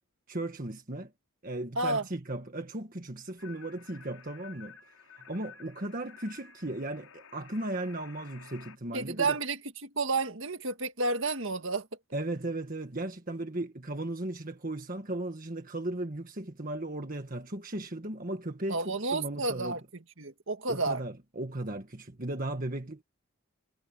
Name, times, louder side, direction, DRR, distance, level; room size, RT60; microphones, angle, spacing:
voice 1, 0.3-1.1 1.4-4.8 5.1-9.4 12.1-19.8 20.7-23.0, right 1 dB, 40° right, 1.6 m, -36 dB
sound 1, 3.4-8.8, left 6 dB, 75° left, 7.0 m, -52 dB
voice 2, 8.9-11.9 18.7-19.8 20.2-21.0, right 3 dB, 60° right, 2.0 m, -31 dB
head